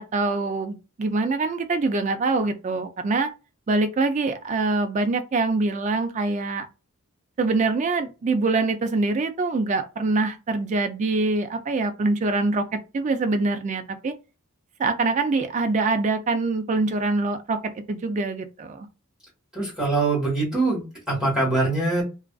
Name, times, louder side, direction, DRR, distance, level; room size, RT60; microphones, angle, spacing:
voice 1, 0.0-3.3 3.7-6.7 7.4-14.1 14.8-18.9, right 3 dB, 35° right, 0.3 m, -24 dB
voice 2, 19.5-22.0, right 2 dB, 5° right, 1.3 m, -23 dB
2.4 x 2.3 x 2.2 m
head